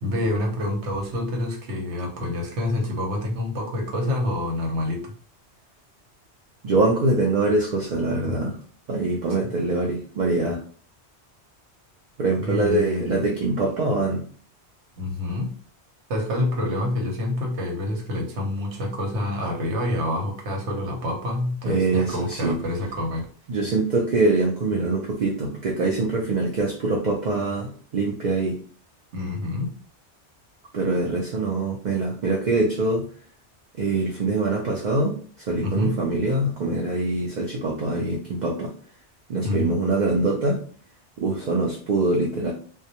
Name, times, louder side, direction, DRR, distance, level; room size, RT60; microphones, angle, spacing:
voice 1, 0.0-5.1 12.4-13.2 15.0-15.5 16.1-23.3 29.1-29.7 35.6-35.9 39.4-39.8, left 1 dB, 85° right, 1 dB, 1.0 m, -27 dB
voice 2, 6.6-8.6 8.9-10.6 12.2-14.2 21.6-22.6 23.5-28.6 30.7-33.1 33.8-38.7 39.3-40.6 41.2-42.5, right 2 dB, 55° right, -1 dB, 0.5 m, -24 dB
2.2 x 2.1 x 2.7 m, 0.43 s
omnidirectional pair, 1.1 m